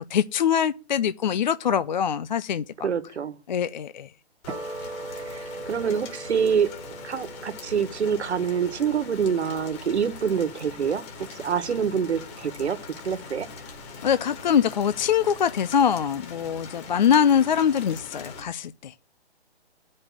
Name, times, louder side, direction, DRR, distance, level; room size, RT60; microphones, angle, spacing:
voice 1, 0.0-2.9 3.5-4.1 11.4-11.5 14.0-18.9, left 8 dB, 45° left, 0.4 m, -23 dB
voice 2, 2.8-3.3 5.3-6.7 7.0-11.0 11.4-12.8 13.0-13.5, right 7 dB, 90° right, 1.3 m, -26 dB
Rain, 4.4-18.4, left 4 dB, 25° left, 1.8 m, -42 dB
sound 1, 4.5-11.0, right 2 dB, 10° right, 1.1 m, -41 dB
9.4 x 5.3 x 7.0 m
hypercardioid pair, 160°, 32 cm